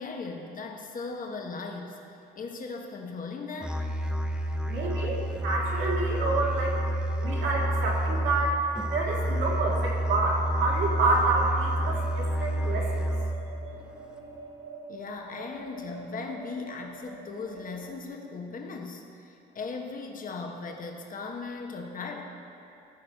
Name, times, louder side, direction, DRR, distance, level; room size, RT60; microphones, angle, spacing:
voice 1, 0.0-2.0 2.4-3.8 5.1-5.2 14.9-22.2, left 4 dB, 45° left, 2 dB, 1.1 m, -38 dB
Musical instrument, 3.6-13.6, right 1 dB, 5° right, 0.6 m, -29 dB
voice 2, 4.6-6.7 7.2-8.6 8.9-13.1, right 3 dB, 75° right, -3 dB, 2.0 m, -28 dB
sound 1, 11.8-18.1, right 3 dB, 50° right, 2.2 m, -45 dB
14.5 x 4.8 x 4.6 m, 2.8 s
cardioid pair, 90°, 20 cm